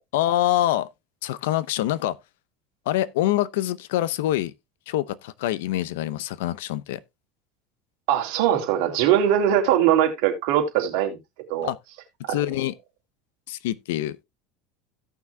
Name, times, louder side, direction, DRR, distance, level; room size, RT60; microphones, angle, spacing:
voice 1, 0.1-0.9 1.2-2.2 2.9-4.5 4.9-7.0 11.6-11.8 12.3-12.7 13.5-14.2, left 14 dB, 85° left, 0.7 m, -25 dB
voice 2, 8.1-11.2 11.5-11.7 12.2-12.4, right 10 dB, 65° right, 2.7 m, -21 dB
17.0 x 6.0 x 2.2 m
supercardioid pair, 145°, 0 cm